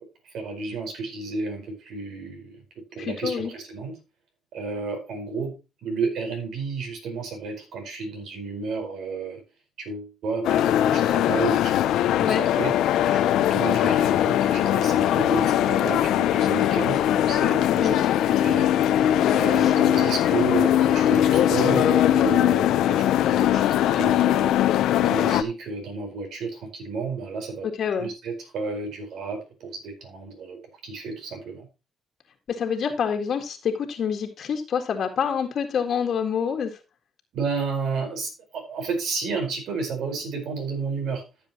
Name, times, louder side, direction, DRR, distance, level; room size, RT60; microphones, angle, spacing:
voice 1, 0.2-2.6 2.9-3.9 4.5-5.6 5.8-9.4 9.8-12.7 13.1-18.0 18.4-18.7 19.3-24.6 25.0-27.7 28.0-31.7 37.3-41.2, right 4 dB, 75° right, 4 dB, 4.6 m, -31 dB
voice 2, 3.0-3.5 12.2-12.4 17.8-18.0 19.2-19.8 27.8-28.1 32.5-36.7, left 7 dB, 60° left, 4 dB, 1.8 m, -27 dB
sound 1, 10.4-25.4, left 11 dB, 85° left, 0.7 m, -21 dB
14.0 x 7.3 x 3.0 m, 0.28 s
cardioid pair, 90°, 0 cm